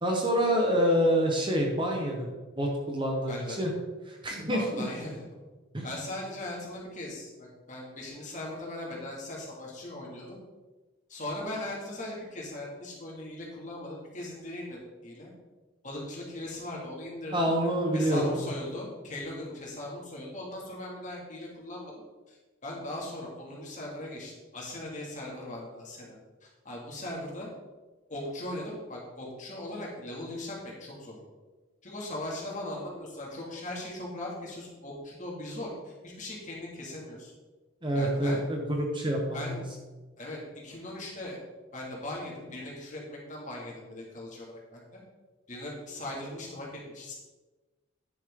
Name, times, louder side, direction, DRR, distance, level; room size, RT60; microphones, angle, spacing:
voice 1, 0.0-2.3 2.6-3.7 4.1-4.8 5.7-5.8 17.3-18.2 37.8-39.6, equal, 25° right, 0 dB, 1.2 m, -27 dB
voice 2, 3.3-3.7 4.5-5.3 5.8-10.4 11.1-15.3 15.8-17.5 17.9-21.9 22.3-22.4 22.6-27.5 28.1-31.2 31.8-37.3 37.9-38.4 39.3-39.7 40.2-41.4 41.7-45.0 45.5-47.1, left 1 dB, 35° left, -3 dB, 2.4 m, -39 dB
9.7 x 7.4 x 3.8 m, 1.2 s
head